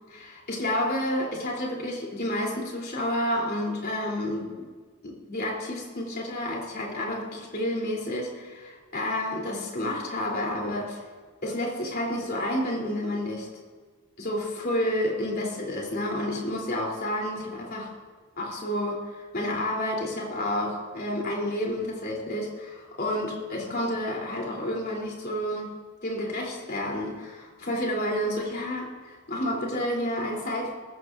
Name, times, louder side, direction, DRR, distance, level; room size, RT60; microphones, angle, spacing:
voice 1, 0.1-4.5 5.0-11.0 11.4-13.5 14.2-17.9 18.4-25.7 26.0-30.8, left 1 dB, 45° left, -2 dB, 3.5 m, -30 dB
19.0 x 15.0 x 2.7 m, 1.5 s
head